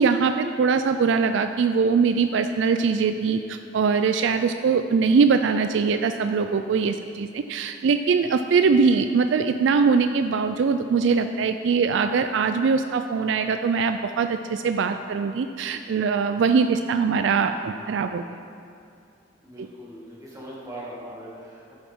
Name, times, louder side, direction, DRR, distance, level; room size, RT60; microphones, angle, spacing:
voice 1, 0.0-18.2, right 5 dB, 70° right, 8 dB, 0.3 m, -22 dB
voice 2, 19.4-21.7, right 1 dB, 20° right, -6 dB, 2.2 m, -40 dB
11.0 x 8.8 x 3.7 m, 2.5 s
head